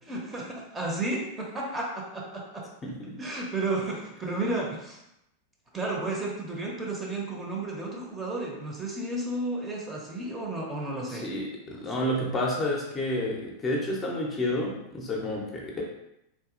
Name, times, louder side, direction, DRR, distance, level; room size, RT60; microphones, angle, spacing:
voice 1, 0.1-2.7 3.2-5.0 5.7-11.3 11.7-12.0, right 2 dB, 15° right, -2 dB, 0.7 m, -32 dB
voice 2, 2.8-3.3 11.1-15.8, left 1 dB, 25° left, -2 dB, 0.7 m, -30 dB
3.6 x 2.7 x 2.5 m, 0.83 s
figure-of-eight pair, 90°, 0 cm